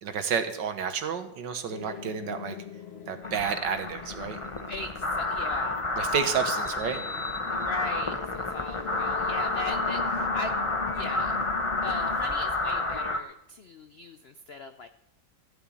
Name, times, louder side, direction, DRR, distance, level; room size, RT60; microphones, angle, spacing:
voice 1, 0.0-2.6 3.1-4.4 6.0-7.0, right 7 dB, 75° right, 8 dB, 1.9 m, -30 dB
sound 1, 1.7-12.2, left 6 dB, 40° left, 1.2 m, -41 dB
sound 2, 3.2-13.2, left 2 dB, 25° left, 0.7 m, -30 dB
voice 2, 4.7-5.8 7.5-10.6 10.9-11.4 11.8-14.9, left 3 dB, 80° left, 9 dB, 0.5 m, -39 dB
15.0 x 7.1 x 9.2 m, 0.78 s
omnidirectional pair, 2.0 m